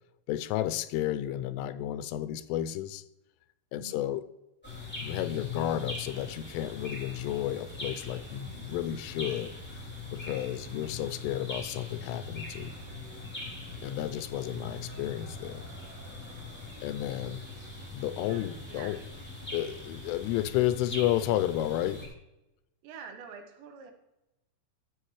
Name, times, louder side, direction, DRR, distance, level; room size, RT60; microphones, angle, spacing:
voice 1, 0.3-3.0 3.7-4.2 5.0-9.5 10.1-12.8 13.8-15.7 16.8-17.4 17.9-19.0 19.5-22.1, left 13 dB, 90° left, 13 dB, 3.1 m, -32 dB
voice 2, 3.7-4.1 14.6-14.7 18.1-19.0 22.8-23.9, right 6 dB, 75° right, 5 dB, 3.0 m, -47 dB
sound 1, 4.6-22.1, left 3 dB, 10° left, 0.7 m, -41 dB
13.0 x 7.5 x 3.1 m, 0.97 s
omnidirectional pair, 5.6 m